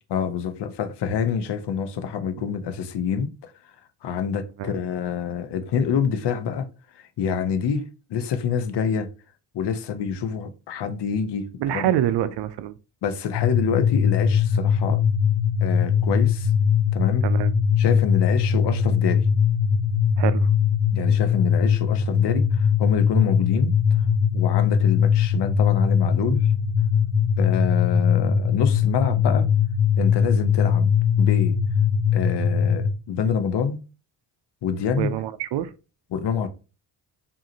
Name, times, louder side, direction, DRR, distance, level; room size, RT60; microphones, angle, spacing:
voice 1, 0.1-3.5 4.0-6.7 6.9-9.1 9.5-11.9 13.0-15.0 15.6-16.5 16.9-17.2 17.8-19.3 20.9-23.7 24.3-26.5 27.4-29.5 30.0-30.9 31.2-31.6 32.1-33.8 34.6-35.1 36.1-36.5, left 7 dB, 55° left, 0.8 m, -26 dB
voice 2, 11.6-12.7 17.2-17.5 20.2-20.5 35.0-35.7, right 12 dB, 60° right, 0.6 m, -26 dB
sound 1, 13.3-32.9, left 7 dB, 90° left, 0.7 m, -21 dB
4.8 x 2.8 x 2.7 m
hypercardioid pair, 55°, 49 cm